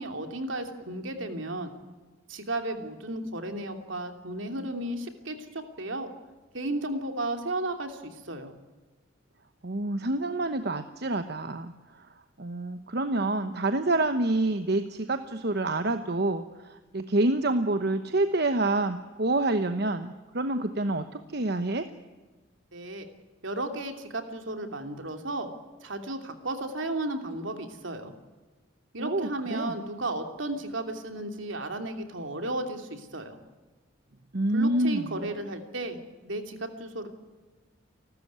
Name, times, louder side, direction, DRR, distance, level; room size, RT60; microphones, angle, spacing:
voice 1, 0.0-1.7 2.3-6.1 6.5-8.5 22.7-23.1 23.4-25.5 25.8-28.1 28.9-33.4 34.5-37.1, right 2 dB, 70° right, 6 dB, 3.0 m, -34 dB
voice 2, 9.6-12.1 12.4-21.9 29.0-29.7 34.3-35.3, right 2 dB, 50° right, 9 dB, 1.0 m, -27 dB
29.5 x 13.0 x 9.5 m, 1.3 s
head